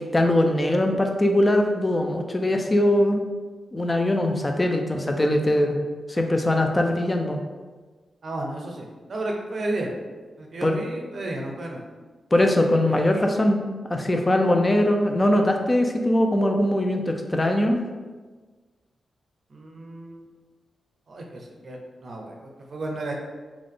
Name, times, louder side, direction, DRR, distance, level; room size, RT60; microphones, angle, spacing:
voice 1, 0.0-3.2 3.7-5.8 6.1-7.4 10.6-10.8 12.3-13.6 13.9-17.8, left 1 dB, 25° left, 4 dB, 0.5 m, -21 dB
voice 2, 8.2-9.9 10.4-11.8 12.8-13.2 19.5-20.3 21.1-23.2, right 2 dB, 60° right, 1 dB, 0.7 m, -33 dB
3.6 x 2.4 x 3.7 m, 1.4 s
cardioid pair, 65°, 0 cm